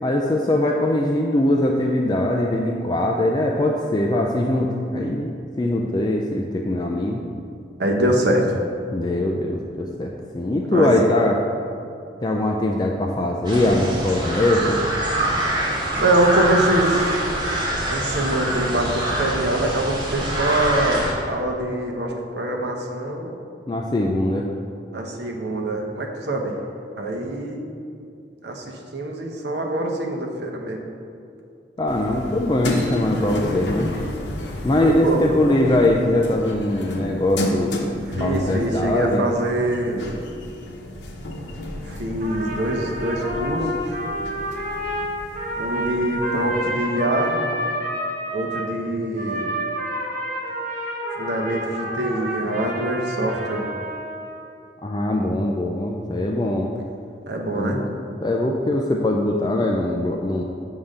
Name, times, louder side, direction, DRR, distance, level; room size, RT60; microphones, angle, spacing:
voice 1, 0.0-5.3 5.6-7.2 8.9-11.4 12.2-14.8 23.7-24.5 31.8-33.9 34.6-37.7 38.2-39.3 54.8-56.7 57.5-60.4, left 1 dB, 25° left, 0 dB, 0.4 m, -21 dB
voice 2, 7.8-8.6 10.7-10.9 16.0-17.2 17.9-23.3 24.9-26.5 27.0-27.6 28.4-30.8 34.8-35.2 35.5-35.6 38.1-40.1 41.9-43.7 45.6-47.4 48.3-49.5 51.2-53.7 57.3-57.8, right 1 dB, 70° right, 1 dB, 0.9 m, -24 dB
sound 1, 13.4-21.1, right 1 dB, 25° right, 1.5 m, -24 dB
sound 2, 31.9-46.7, left 1 dB, 85° left, 0.9 m, -32 dB
Trumpet, 42.2-48.7 49.1-54.5, right 1 dB, 50° right, 1.2 m, -29 dB
7.0 x 3.7 x 6.5 m, 2.5 s
head